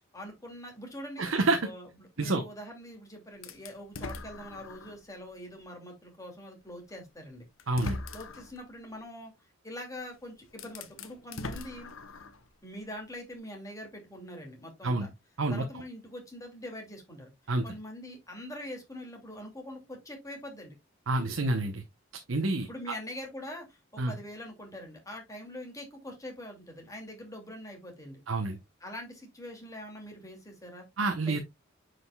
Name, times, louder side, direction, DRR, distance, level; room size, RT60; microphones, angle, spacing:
voice 1, 0.1-1.3 1.6-7.5 8.1-9.3 9.6-11.9 12.6-15.1 15.5-17.3 17.6-20.8 22.6-28.2 28.8-30.8 31.2-31.4, left 1 dB, 15° left, 2.6 m, -43 dB
voice 2, 1.2-1.6 2.2-2.4 7.7-8.0 14.8-15.1 15.4-15.6 17.5-17.6 21.1-21.8 22.3-22.9 24.0-24.2 28.3-28.6 31.0-31.4, right 2 dB, 80° right, 1.0 m, -28 dB
sound 1, 3.4-5.1 5.6-5.7 6.9-7.0 7.6-8.6 10.0-10.1 10.5-12.5, left 2 dB, 90° left, 0.9 m, -41 dB
9.7 x 5.1 x 2.3 m
head